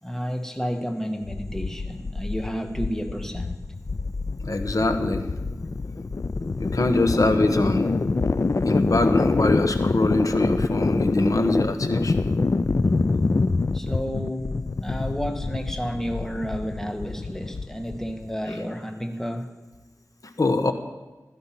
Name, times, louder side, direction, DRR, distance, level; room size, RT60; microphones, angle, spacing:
voice 1, 0.0-3.6 13.7-14.5 14.8-19.6, equal, 5° left, 5 dB, 1.6 m, -31 dB
sound 1, 1.2-18.3, left 3 dB, 50° left, 0.5 m, -26 dB
voice 2, 4.4-5.3 6.6-7.9 8.7-12.2 20.4-20.7, left 2 dB, 65° left, 7 dB, 1.2 m, -23 dB
16.0 x 13.5 x 5.9 m, 1.2 s
wide cardioid pair, 75°, 6 cm